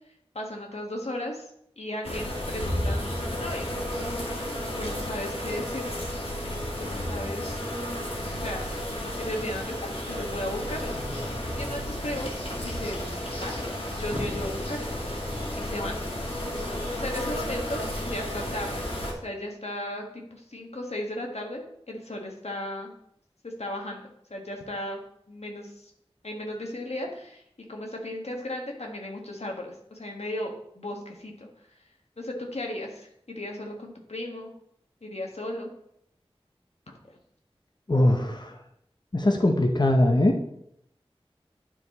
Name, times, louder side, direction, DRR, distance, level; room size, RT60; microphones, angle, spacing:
voice 1, 0.3-1.5 1.8-3.7 4.7-6.0 6.8-7.6 8.3-8.7 9.0-10.9 11.2-13.0 13.4-13.6 13.9-14.9 15.6-16.0 17.0-18.9 19.2-22.9 23.4-24.0 24.3-25.0 25.3-25.9 26.2-27.4 27.7-31.8 32.2-34.5 35.0-35.7, left 1 dB, 85° left, 1 dB, 1.4 m, -35 dB
sound 1, 2.0-19.1, left 1 dB, 65° left, 2.0 m, -32 dB
voice 2, 37.9-38.6 39.1-40.4, left 1 dB, 45° left, 3 dB, 0.8 m, -21 dB
9.8 x 4.6 x 4.1 m, 0.73 s
wide cardioid pair, 45°, 11 cm